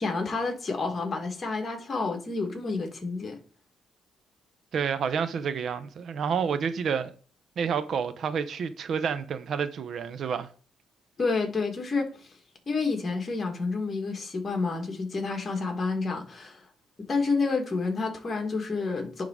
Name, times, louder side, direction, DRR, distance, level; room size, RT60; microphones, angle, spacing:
voice 1, 0.0-3.4 11.2-12.2 12.7-16.6 17.1-19.2, left 4 dB, 35° left, 2.4 m, -29 dB
voice 2, 4.7-7.1 7.6-10.5, right 6 dB, 60° right, 0.7 m, -29 dB
10.5 x 3.8 x 4.9 m
cardioid pair, 90°, 0 cm